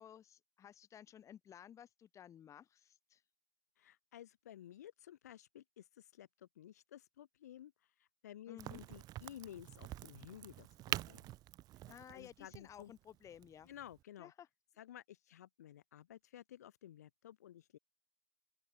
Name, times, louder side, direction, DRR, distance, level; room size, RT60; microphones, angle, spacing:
voice 1, 0.0-3.2 8.5-8.8 11.9-13.7 14.2-14.5, left 9 dB, 35° left, 3.7 m, -56 dB
voice 2, 3.8-7.7 8.2-11.3 12.1-12.9 13.7-14.3 14.8-17.8, left 11 dB, 75° left, 2.5 m, -54 dB
Crack, 8.6-14.0, right 15 dB, 50° right, 2.5 m, -46 dB
open air
hypercardioid pair, 80°, 9 cm